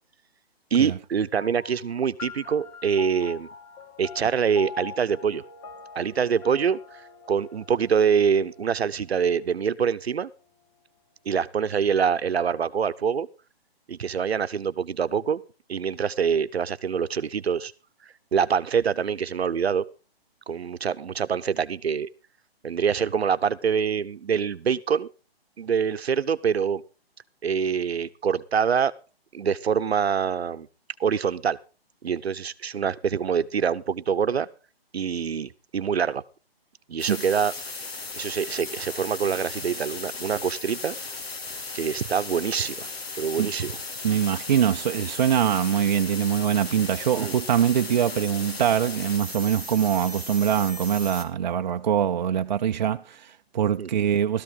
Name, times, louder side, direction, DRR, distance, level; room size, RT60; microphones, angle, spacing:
voice 1, 0.7-3.5 4.0-5.4 5.9-7.0 7.3-10.3 11.3-13.3 13.9-15.4 15.7-17.7 18.3-19.8 20.5-22.1 22.6-25.1 25.6-26.8 27.4-28.9 29.3-30.7 31.0-31.6 32.0-34.5 34.9-36.2 36.9-37.5 38.1-40.9 41.7-42.9 43.2-43.8 47.2-47.3 53.8-53.9, right 7 dB, 80° right, 1.0 m, -25 dB
sound 1, 1.4-10.2, left 5 dB, 20° left, 1.3 m, -44 dB
sound 2, 37.0-51.2, left 3 dB, 75° left, 2.9 m, -36 dB
voice 2, 44.0-54.4, right 9 dB, 45° right, 0.7 m, -23 dB
14.0 x 13.5 x 3.9 m
hypercardioid pair, 160°, 31 cm